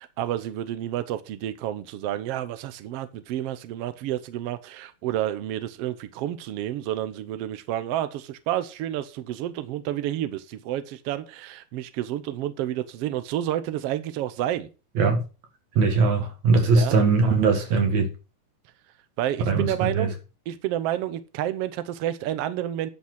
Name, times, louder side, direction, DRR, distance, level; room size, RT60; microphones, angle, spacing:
voice 1, 0.0-14.7 16.7-17.0 19.2-20.1 20.5-22.9, right 12 dB, 80° right, 1.3 m, -30 dB
voice 2, 15.8-18.1 19.5-20.1, right 4 dB, 60° right, 3.2 m, -20 dB
10.0 x 6.1 x 6.2 m
omnidirectional pair, 3.8 m